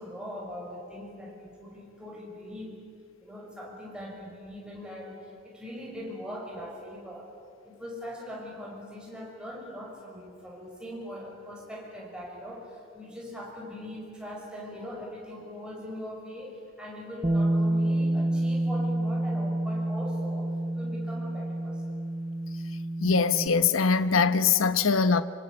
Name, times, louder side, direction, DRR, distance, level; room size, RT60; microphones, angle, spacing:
voice 1, 0.0-2.8 3.2-7.3 7.6-22.0, left 1 dB, 5° right, 6.1 m, -41 dB
Bass guitar, 17.2-23.5, right 1 dB, 20° right, 0.8 m, -28 dB
voice 2, 23.0-25.2, left 5 dB, 85° left, 0.9 m, -22 dB
26.5 x 25.5 x 8.6 m
head